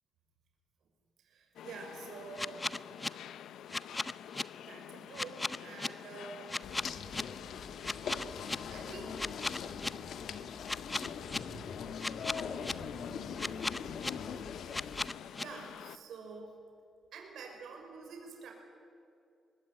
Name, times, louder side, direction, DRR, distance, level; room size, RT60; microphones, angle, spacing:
voice 1, 1.2-2.7 3.8-3.9 4.6-6.5 8.7-9.2 11.3-11.9 12.8-12.9 15.4-16.6 17.1-18.5, right 4 dB, 80° right, 1 dB, 5.9 m, -48 dB
sound 1, 1.6-16.0, left 10 dB, 90° left, 0.7 m, -48 dB
sound 2, 2.4-3.1 3.7-4.4 5.1-5.9 6.5-7.2 7.8-8.6 9.2-9.9 10.7-11.4 12.0-12.7 13.4-14.1 14.7-15.4, left 2 dB, 15° left, 0.7 m, -35 dB
sound 3, 6.6-15.1, left 6 dB, 70° left, 1.7 m, -42 dB
25.0 x 20.5 x 9.3 m, 2.5 s
cardioid pair, 120°, 0 cm